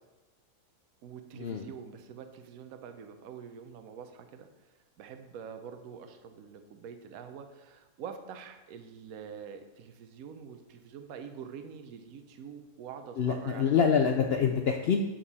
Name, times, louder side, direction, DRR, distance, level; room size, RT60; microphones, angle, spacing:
voice 1, 1.0-4.5 5.0-14.1, right 7 dB, 70° right, 7 dB, 1.1 m, -45 dB
voice 2, 13.2-15.0, left 7 dB, 85° left, 3 dB, 0.5 m, -26 dB
8.7 x 5.3 x 4.1 m, 1.1 s
omnidirectional pair, 1.6 m